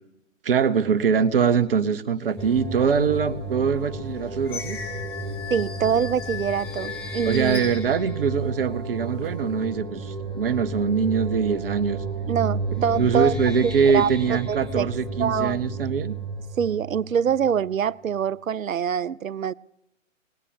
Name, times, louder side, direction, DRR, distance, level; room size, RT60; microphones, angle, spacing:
voice 1, 0.4-4.8 7.2-12.0 12.8-16.1, right 6 dB, 45° right, 0.9 m, -23 dB
sound 1, 2.4-17.8, right 1 dB, ahead, 1.1 m, -33 dB
sound 2, 3.1-3.2 3.8-8.5 9.0-9.6, left 7 dB, 20° left, 0.6 m, -38 dB
voice 2, 5.5-7.6 12.3-13.4 13.6-14.9 15.2-15.6 16.6-19.5, right 8 dB, 85° right, 0.5 m, -25 dB
19.0 x 9.9 x 7.2 m
figure-of-eight pair, 130°, 40 cm